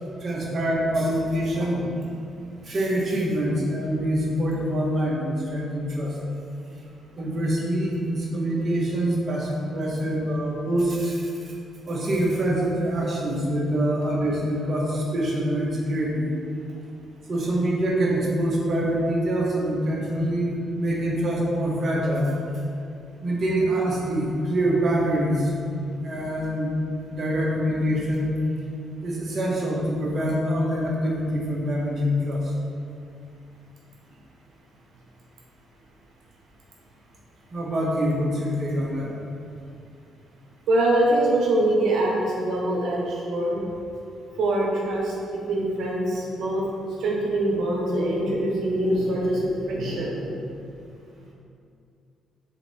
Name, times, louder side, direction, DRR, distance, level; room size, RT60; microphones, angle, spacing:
voice 1, 0.2-1.9 2.6-6.2 7.2-11.2 11.9-16.3 17.3-22.3 23.2-25.5 26.0-26.7 27.1-28.3 29.0-32.5 37.5-39.1, right 1 dB, 45° right, -3 dB, 1.4 m, -25 dB
voice 2, 40.7-43.6 44.4-45.1 45.5-50.4, right 1 dB, 70° right, -4 dB, 1.2 m, -24 dB
5.6 x 4.1 x 4.3 m, 2.5 s
cardioid pair, 90°, 0 cm